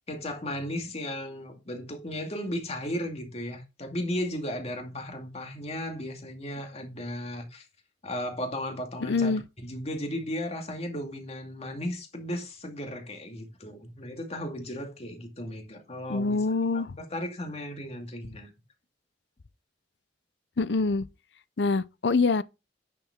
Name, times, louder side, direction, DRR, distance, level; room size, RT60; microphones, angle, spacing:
voice 1, 0.1-7.7 8.0-16.4 16.7-18.5, left 1 dB, 35° left, 2.4 m, -35 dB
voice 2, 9.1-9.4 16.1-16.9 20.6-21.0 21.6-22.4, left 4 dB, 70° left, 0.6 m, -25 dB
9.9 x 7.1 x 3.7 m
head